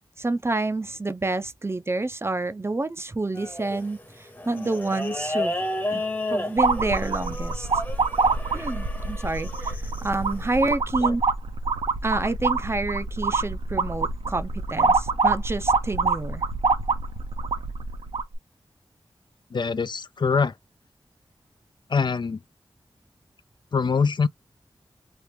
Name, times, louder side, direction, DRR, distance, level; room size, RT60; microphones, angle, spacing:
voice 1, 0.2-5.5 5.9-6.0 6.3-7.7 8.5-11.2 12.0-16.4, right 2 dB, 25° right, 0.5 m, -28 dB
sound 1, 3.3-10.7, left 1 dB, 20° left, 0.9 m, -33 dB
sound 2, 6.6-18.3, right 4 dB, 80° right, 0.7 m, -25 dB
voice 2, 19.5-20.5 21.9-22.4 23.7-24.3, left 5 dB, 55° left, 0.4 m, -23 dB
3.0 x 2.4 x 3.3 m
cardioid pair, 50°, 9 cm